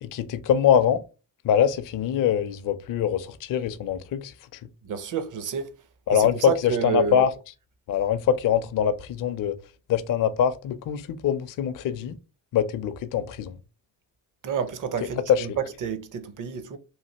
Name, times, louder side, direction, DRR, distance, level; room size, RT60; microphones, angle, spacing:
voice 1, 0.0-1.0 1.4-4.6 6.1-7.3 7.9-9.5 9.9-12.2 12.5-13.6 15.3-15.6, left 9 dB, 45° left, 0.5 m, -23 dB
voice 2, 4.8-5.7 6.1-7.2 14.4-16.8, right 7 dB, 40° right, 0.7 m, -29 dB
3.3 x 2.4 x 2.8 m
supercardioid pair, 55°, 49 cm